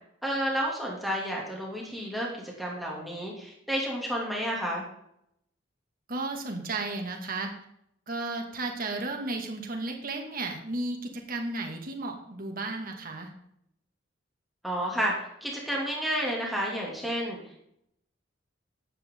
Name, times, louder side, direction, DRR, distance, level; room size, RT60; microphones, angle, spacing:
voice 1, 0.2-4.8 14.6-15.1 15.4-17.4, equal, ahead, -3 dB, 2.8 m, -31 dB
voice 2, 6.1-7.5 8.1-13.3, right 2 dB, 50° right, 3 dB, 2.3 m, -34 dB
14.5 x 9.7 x 3.9 m, 0.75 s
head